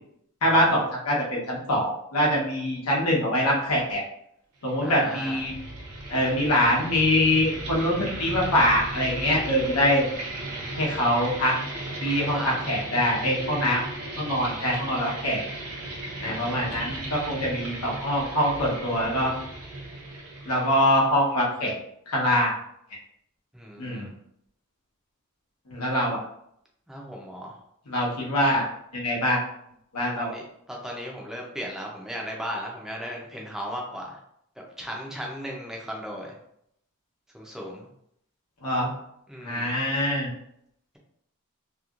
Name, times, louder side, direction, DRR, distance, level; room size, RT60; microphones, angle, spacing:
voice 1, 0.4-4.0 4.6-5.5 6.1-10.0 10.8-11.5 12.0-13.8 14.2-15.4 16.2-19.3 20.5-21.7 22.1-22.5 23.8-24.1 25.7-26.2 27.9-28.7 28.9-29.4 29.9-30.3 38.6-38.9 39.4-40.3, equal, 85° left, -3 dB, 1.0 m, -24 dB
sound 1, 4.6-21.3, right 2 dB, 80° right, 0.8 m, -36 dB
voice 2, 4.8-5.4 11.7-11.8 12.0-12.6 16.2-16.6 23.5-24.1 26.9-27.5 30.2-34.2 34.8-36.3 37.3-37.9 39.3-39.7, equal, ahead, -2 dB, 0.5 m, -36 dB
3.0 x 2.9 x 2.4 m, 0.73 s
head